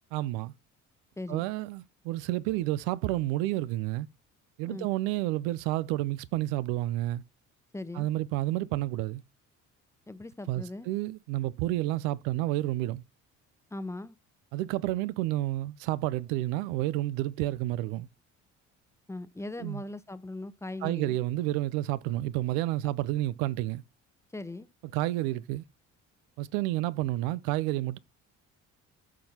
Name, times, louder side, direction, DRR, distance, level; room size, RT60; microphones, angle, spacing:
voice 1, 0.1-0.5 1.3-4.1 4.6-7.2 8.0-9.2 10.5-13.0 14.5-18.1 19.6-19.8 20.8-23.8 24.9-25.6 26.4-28.0, right 16 dB, 85° right, 0.6 m, -30 dB
voice 2, 1.2-1.5 4.7-4.9 7.7-8.1 10.1-10.9 13.7-14.2 19.1-21.2 24.3-24.7, left 2 dB, 10° left, 0.8 m, -39 dB
13.0 x 6.0 x 2.8 m
hypercardioid pair, 65°, 36 cm